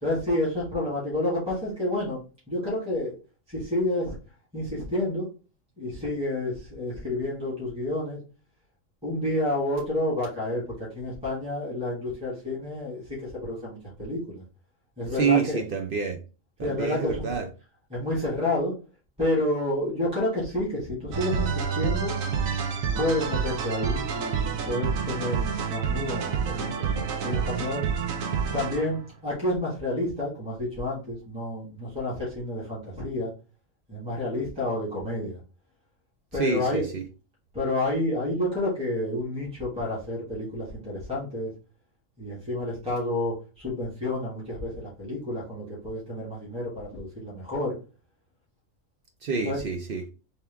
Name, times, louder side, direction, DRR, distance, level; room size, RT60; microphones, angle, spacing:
voice 1, 0.0-2.2 2.5-3.2 3.5-4.2 4.5-5.3 5.8-8.2 9.0-14.4 15.0-15.6 16.6-17.3 17.9-18.8 19.2-22.1 22.9-27.9 28.5-33.3 33.9-35.4 36.3-36.9 37.5-41.5 42.2-47.8 49.4-49.6, left 1 dB, 5° right, 1.6 m, -29 dB
voice 2, 15.1-16.2 16.6-17.5 36.3-37.1 49.2-50.1, right 5 dB, 60° right, 0.5 m, -27 dB
sound 1, 21.1-29.0, right 6 dB, 80° right, 1.1 m, -28 dB
3.5 x 3.0 x 3.4 m
omnidirectional pair, 1.4 m